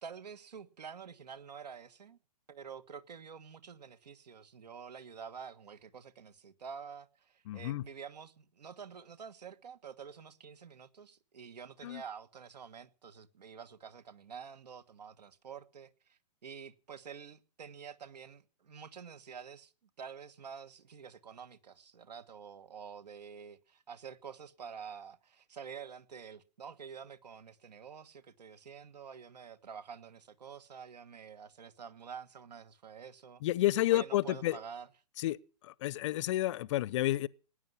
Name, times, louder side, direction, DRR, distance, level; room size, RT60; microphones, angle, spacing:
voice 1, 0.0-2.2 2.5-19.7 20.0-33.4 33.9-34.9, right 7 dB, 75° right, 1.5 m, -48 dB
voice 2, 7.5-7.8 11.8-12.0 33.4-34.6 35.2-35.4 35.6-37.3, left 15 dB, 45° left, 0.6 m, -30 dB
19.0 x 10.0 x 5.6 m
hypercardioid pair, 120°, 21 cm